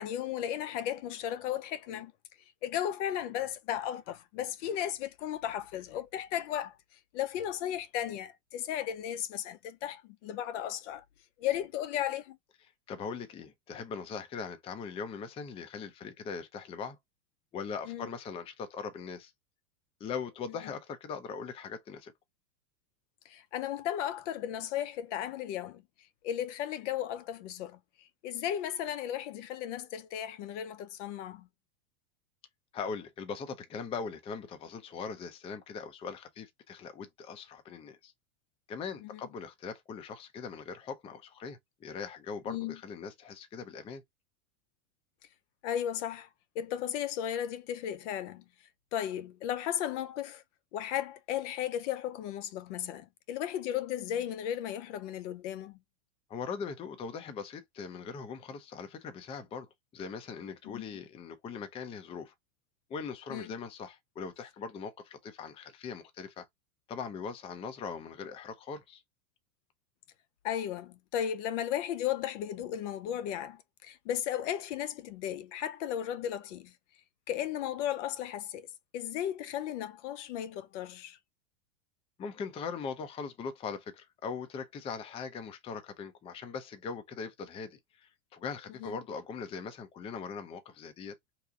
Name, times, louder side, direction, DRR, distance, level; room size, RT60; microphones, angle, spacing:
voice 1, 0.0-2.1 2.6-6.8 7.1-11.0 11.4-12.4 17.9-18.1 23.3-25.8 26.2-27.8 28.2-31.5 39.0-39.2 42.5-42.8 45.6-46.3 46.6-48.4 48.9-50.4 50.7-55.8 60.6-60.8 63.3-63.5 70.4-76.7 77.3-78.7 78.9-81.2 88.8-88.9, left 10 dB, 60° left, 0.6 m, -35 dB
voice 2, 12.9-17.0 17.5-19.3 20.0-22.1 32.7-38.1 38.7-44.0 56.3-59.7 59.9-62.3 62.9-66.5 66.9-69.0 82.2-91.2, left 5 dB, 15° left, 0.4 m, -40 dB
2.8 x 2.5 x 3.5 m
supercardioid pair, 135°, 42 cm